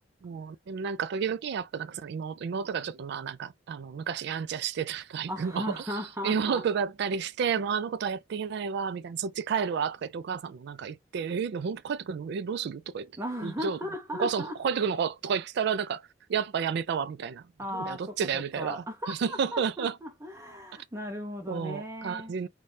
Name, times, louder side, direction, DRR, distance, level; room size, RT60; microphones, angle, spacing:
voice 1, 0.2-13.1 13.4-13.8 14.2-16.0 16.3-17.4 17.7-20.0 21.5-22.5, right 6 dB, 60° right, 0.3 m, -31 dB
voice 2, 5.3-6.6 13.2-14.6 17.6-22.3, equal, 15° right, 0.6 m, -37 dB
2.6 x 2.3 x 3.1 m
head